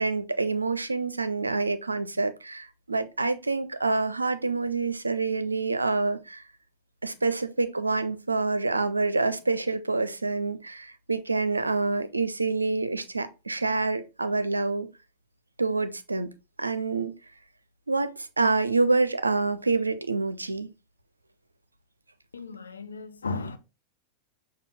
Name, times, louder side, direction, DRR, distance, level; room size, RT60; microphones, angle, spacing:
voice 1, 0.0-6.4 7.0-14.9 15.6-16.3 16.6-17.1 17.9-20.7, right 3 dB, 80° right, 0.4 m, -27 dB
voice 2, 22.3-23.6, left 3 dB, 75° left, 0.6 m, -35 dB
6.6 x 2.2 x 3.5 m
figure-of-eight pair, 90°, 0 cm